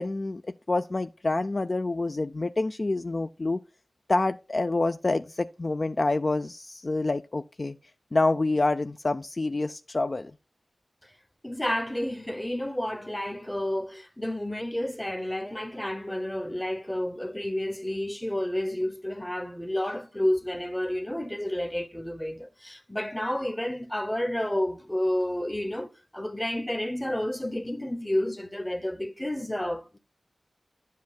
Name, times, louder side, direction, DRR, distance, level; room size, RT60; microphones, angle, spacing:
voice 1, 0.0-3.6 4.1-7.8 8.1-10.3, left 2 dB, 45° left, 0.3 m, -27 dB
voice 2, 11.4-30.0, left 1 dB, 10° left, 0.8 m, -30 dB
10.5 x 7.4 x 2.3 m
wide cardioid pair, 60°, 0 cm